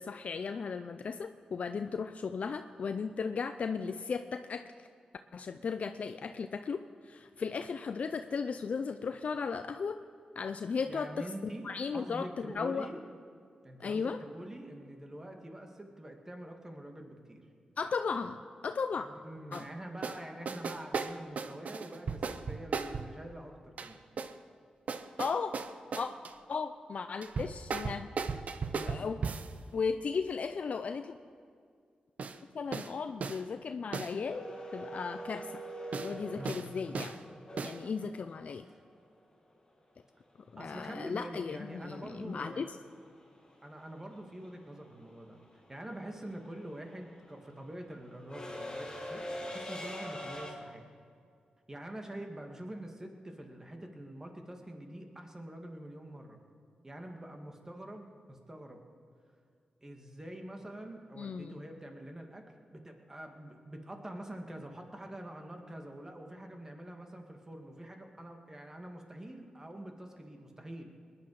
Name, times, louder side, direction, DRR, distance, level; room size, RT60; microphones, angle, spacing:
voice 1, 0.0-4.9 5.3-10.0 10.4-12.9 13.8-14.2 17.8-19.1 19.5-19.7 25.2-25.6 26.0-26.1 26.5-28.1 28.8-29.2 29.7-31.2 32.5-35.6 36.0-37.2 37.6-38.6 40.5-42.7 61.2-61.6, left 5 dB, 60° left, 8 dB, 0.5 m, -36 dB
voice 2, 10.9-13.0 13.6-17.4 19.0-24.0 28.7-29.1 36.1-37.1 37.8-38.1 38.6-38.8 40.6-42.7 43.6-45.4 45.7-50.8 51.7-56.4 56.8-58.8 59.8-62.4 62.7-70.9, right 1 dB, 20° right, 3 dB, 2.1 m, -45 dB
sound 1, 19.5-19.6 20.0-20.2 20.5-23.1 23.8-24.3 24.9-26.3 27.2-29.5 32.2-32.4 32.7-32.9 33.2-33.4 33.9-34.1 35.9-36.1 36.4-36.7 36.9-37.2 37.6-37.8, right 5 dB, 65° right, 0.7 m, -36 dB
sound 2, 34.3-38.3 40.8-40.9 42.2-42.5 42.7-50.5, equal, 30° left, 4.8 m, -43 dB
20.5 x 11.0 x 4.9 m, 2.2 s
cardioid pair, 75°, 3 cm